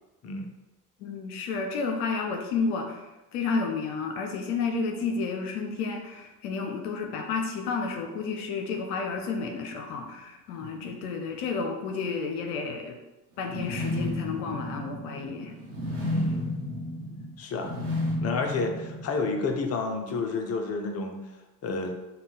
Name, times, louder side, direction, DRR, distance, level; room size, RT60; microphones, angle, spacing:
voice 1, 1.0-13.0 13.4-15.5, left 4 dB, 75° left, 3 dB, 0.7 m, -31 dB
voice 2, 10.6-10.9 16.0-16.6 17.4-17.8 18.2-21.2 21.6-21.9, left 3 dB, 35° left, 4 dB, 0.7 m, -30 dB
sound 1, 13.4-19.5, left 1 dB, 80° right, 1.1 m, -32 dB
5.3 x 2.4 x 3.8 m, 1.1 s
hypercardioid pair, 60°, 45 cm